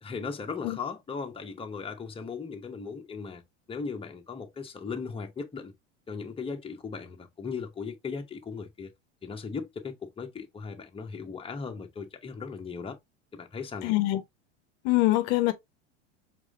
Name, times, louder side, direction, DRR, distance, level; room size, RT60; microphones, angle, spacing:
voice 1, 0.0-3.4 3.7-5.7 6.1-8.9 9.2-13.0 13.3-13.9, left 5 dB, 15° left, 1.0 m, -37 dB
voice 2, 13.8-14.2 14.8-15.5, left 18 dB, 60° left, 0.7 m, -24 dB
4.8 x 3.8 x 2.4 m
hypercardioid pair, 90°, 36 cm